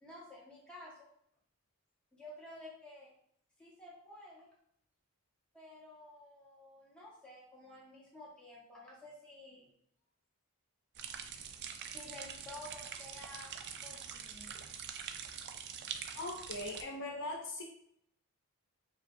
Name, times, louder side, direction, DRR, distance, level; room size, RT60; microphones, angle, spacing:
voice 1, 0.0-1.1 2.1-3.1 3.6-4.5 5.5-9.7 11.9-13.5 13.8-14.5, left 1 dB, 5° left, -6 dB, 1.1 m, -52 dB
sound 1, 10.9-16.8, right 7 dB, 50° right, 0.3 m, -45 dB
voice 2, 16.1-17.6, left 2 dB, 60° left, -1 dB, 0.8 m, -40 dB
4.8 x 2.8 x 2.6 m, 0.69 s
head